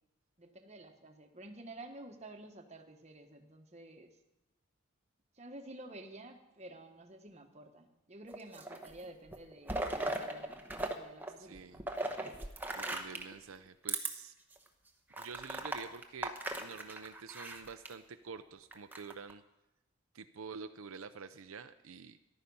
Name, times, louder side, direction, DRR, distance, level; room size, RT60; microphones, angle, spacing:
voice 1, 0.4-4.1 5.3-12.0, right 1 dB, 30° right, 5 dB, 1.2 m, -51 dB
sound 1, 8.3-9.0 9.3-10.9 11.2-13.3 13.8-14.1 14.6-14.7 15.1-17.9 18.7-19.3, right 2 dB, 10° right, 1.0 m, -38 dB
voice 2, 11.4-11.8 12.4-14.3 15.2-19.4 20.1-22.2, right 5 dB, 75° right, 9 dB, 0.6 m, -48 dB
14.0 x 11.5 x 5.4 m, 0.96 s
head